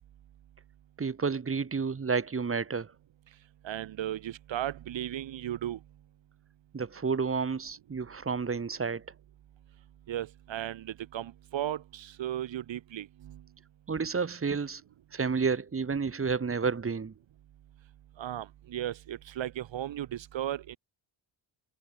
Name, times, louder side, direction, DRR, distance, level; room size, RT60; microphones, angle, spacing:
voice 1, 1.0-2.9 6.7-9.0 13.9-14.8 15.1-17.1, right 5 dB, 30° right, 1.8 m, -30 dB
voice 2, 3.6-5.8 10.1-13.4 18.2-20.8, right 11 dB, 75° right, 4.0 m, -36 dB
cardioid pair, 95°, 45 cm